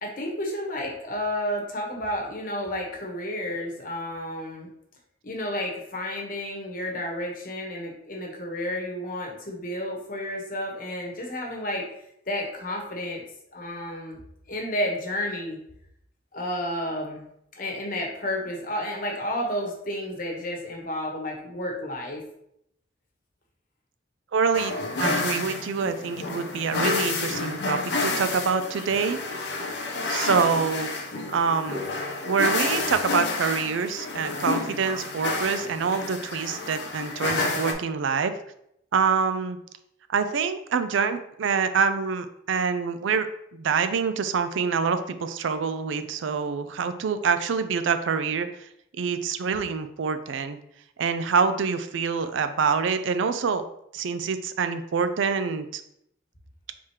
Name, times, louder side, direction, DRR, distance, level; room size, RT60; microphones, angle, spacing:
voice 1, 0.0-4.7 5.2-11.9 12.3-13.2 13.5-14.2 14.5-15.6 16.3-17.3 17.6-22.2, left 1 dB, 45° left, 0 dB, 1.0 m, -31 dB
voice 2, 24.3-24.7 25.0-29.2 30.1-30.9 31.3-31.8 32.2-38.3 38.9-39.6 40.1-43.3 43.5-48.5 49.0-50.6 51.0-53.6 53.9-55.8, right 5 dB, 80° right, 10 dB, 0.4 m, -26 dB
sound 1, 24.5-37.7, left 3 dB, 65° left, 0.6 m, -30 dB
4.8 x 3.6 x 2.9 m, 0.74 s
head